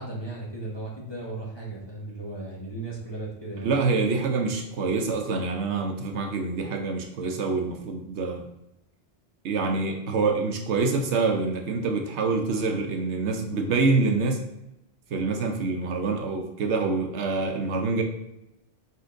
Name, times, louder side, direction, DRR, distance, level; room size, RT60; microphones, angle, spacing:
voice 1, 0.0-3.7, right 2 dB, 25° left, -4 dB, 1.1 m, -36 dB
voice 2, 3.6-8.5 9.4-14.4 15.1-18.0, right 4 dB, 80° right, 5 dB, 1.0 m, -26 dB
5.0 x 4.2 x 2.5 m, 0.87 s
omnidirectional pair, 1.1 m